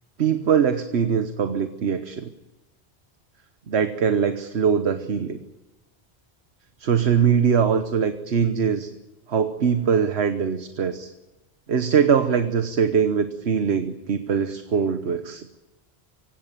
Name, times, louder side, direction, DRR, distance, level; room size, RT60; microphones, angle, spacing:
voice 1, 0.2-2.3 3.7-5.4 6.8-8.9 9.3-11.1 11.7-15.6, right 7 dB, 80° right, 9 dB, 1.3 m, -22 dB
24.0 x 17.0 x 9.1 m, 1.0 s
omnidirectional pair, 1.1 m